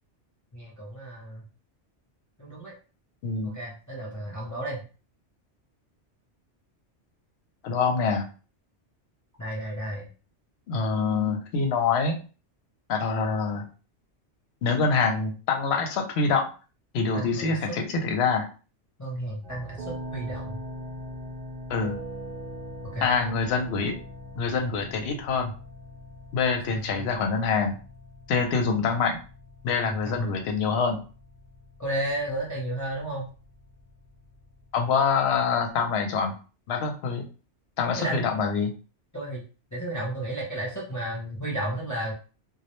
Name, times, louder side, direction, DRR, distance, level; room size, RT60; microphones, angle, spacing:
voice 1, 0.5-1.4 2.4-2.7 3.4-4.8 9.4-10.1 17.1-17.6 19.0-20.6 22.9-23.1 29.8-30.3 31.8-33.3 38.0-38.2 39.1-39.4 39.7-42.1, right 1 dB, 25° left, -5 dB, 0.4 m, -33 dB
voice 2, 3.2-3.5 7.6-8.3 10.7-12.2 12.9-13.7 14.6-16.5 16.9-18.5 21.7-22.0 23.0-24.0 24.4-25.5 26.3-27.8 28.3-29.2 29.6-31.0 34.7-36.3 36.7-37.3 37.8-38.7, left 5 dB, 70° left, 3 dB, 0.8 m, -25 dB
sound 1, 19.4-35.9, equal, 55° right, 0.7 m, -42 dB
2.2 x 2.0 x 2.9 m, 0.36 s
omnidirectional pair, 1.2 m